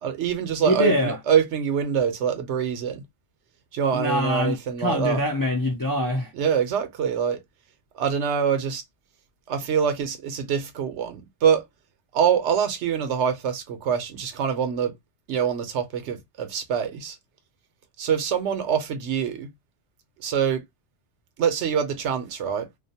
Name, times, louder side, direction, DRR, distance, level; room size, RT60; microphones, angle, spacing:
voice 1, 0.0-3.0 3.7-5.2 6.3-7.4 7.9-8.8 9.5-11.6 12.1-14.9 15.3-17.2 18.0-19.5 20.2-20.6 21.4-22.7, right 7 dB, 80° right, 0.9 m, -25 dB
voice 2, 0.6-1.2 3.9-6.3, left 1 dB, 35° left, 0.3 m, -24 dB
2.4 x 2.0 x 2.7 m
omnidirectional pair, 1.2 m